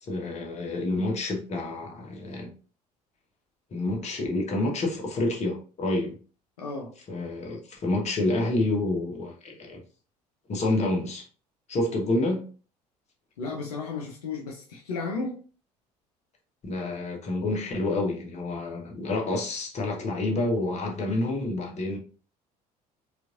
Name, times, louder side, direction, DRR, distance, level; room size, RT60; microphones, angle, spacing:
voice 1, 0.0-2.5 3.7-6.2 7.1-9.8 10.5-11.3 11.7-12.5 16.6-22.0, left 2 dB, 35° left, 1.2 m, -28 dB
voice 2, 6.6-6.9 13.4-15.4, left 4 dB, 70° left, 0.6 m, -33 dB
4.5 x 2.6 x 2.5 m
figure-of-eight pair, 60°, 20 cm